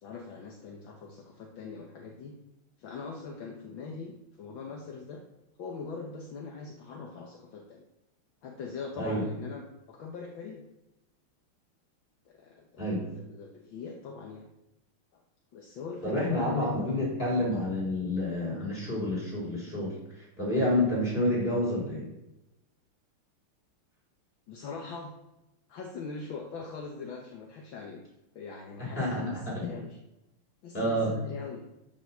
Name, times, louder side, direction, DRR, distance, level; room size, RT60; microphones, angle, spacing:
voice 1, 0.0-2.3 2.8-5.2 5.6-7.8 8.4-10.6 12.3-14.5 15.1-15.2 15.5-17.1 24.5-25.2 25.7-28.0 28.4-30.0 30.6-31.6, left 4 dB, 65° left, 0 dB, 1.9 m, -42 dB
voice 2, 12.8-13.1 16.0-22.1 28.8-29.7 30.7-31.2, left 1 dB, 25° left, -5 dB, 5.6 m, -29 dB
11.5 x 7.0 x 6.3 m, 0.93 s
omnidirectional pair, 2.4 m